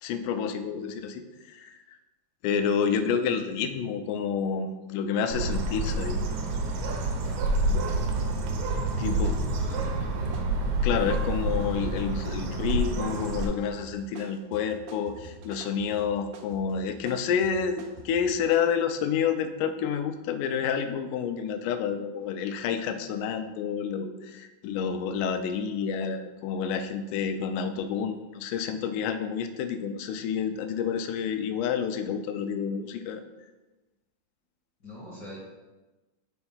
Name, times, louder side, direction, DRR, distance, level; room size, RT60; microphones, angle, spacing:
voice 1, 0.0-2.0 2.4-6.2 9.0-9.4 10.8-33.2, left 7 dB, 80° left, 8 dB, 1.9 m, -29 dB
Bird, 5.3-13.4, right 2 dB, 70° right, 1.9 m, -28 dB
sound 1, 7.1-7.2 7.6-11.2 11.6-12.0 12.3-18.7, right 4 dB, 90° right, 2.5 m, -47 dB
voice 2, 8.9-10.4 34.8-35.4, equal, 60° left, -4 dB, 1.1 m, -44 dB
6.0 x 4.3 x 5.6 m, 1.1 s
omnidirectional pair, 4.0 m